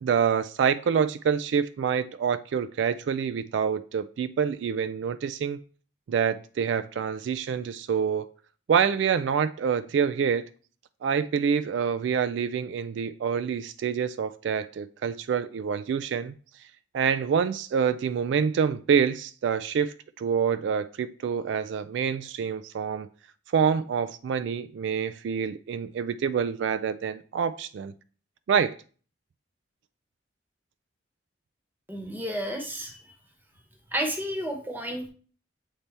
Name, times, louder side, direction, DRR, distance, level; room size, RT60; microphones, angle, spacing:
voice 1, 0.0-5.6 6.1-8.3 8.7-10.4 11.0-16.3 16.9-23.1 23.5-27.9 28.5-28.8, right 7 dB, 70° right, 0.3 m, -26 dB
voice 2, 31.9-33.1 33.9-35.1, equal, 10° right, 1.0 m, -31 dB
7.3 x 4.1 x 3.3 m
head